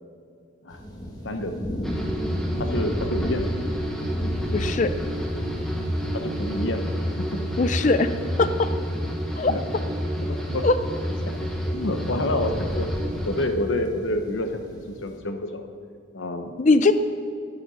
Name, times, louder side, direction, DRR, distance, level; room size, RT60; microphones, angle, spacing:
sound 1, 0.7-15.2, equal, 20° left, 1.4 m, -36 dB
voice 1, 1.2-1.7 2.6-3.5 6.1-6.9 7.2-7.4 9.4-9.6 10.2-10.7 11.3-12.9 13.2-15.7 16.1-16.6, left 1 dB, 90° left, 6 dB, 1.0 m, -29 dB
sound 2, 1.8-13.5, equal, 5° left, 1.3 m, -29 dB
voice 2, 4.5-4.9 7.6-8.1 8.4-8.7 9.4-9.5 10.6-10.7 16.6-16.9, left 3 dB, 40° left, 11 dB, 0.4 m, -20 dB
11.0 x 9.1 x 5.6 m, 2.4 s
head